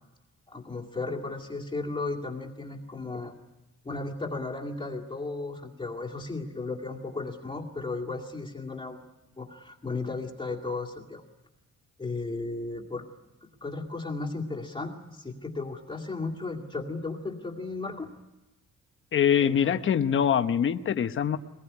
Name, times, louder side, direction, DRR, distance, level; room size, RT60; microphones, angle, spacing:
voice 1, 0.5-3.3 3.8-9.0 9.4-11.2 12.0-13.0 13.6-18.1 19.4-19.8, left 3 dB, 15° left, 1 dB, 2.2 m, -35 dB
voice 2, 19.1-21.4, left 8 dB, 40° left, 9 dB, 1.0 m, -24 dB
23.0 x 20.0 x 9.6 m, 1.0 s
wide cardioid pair, 175°, 30 cm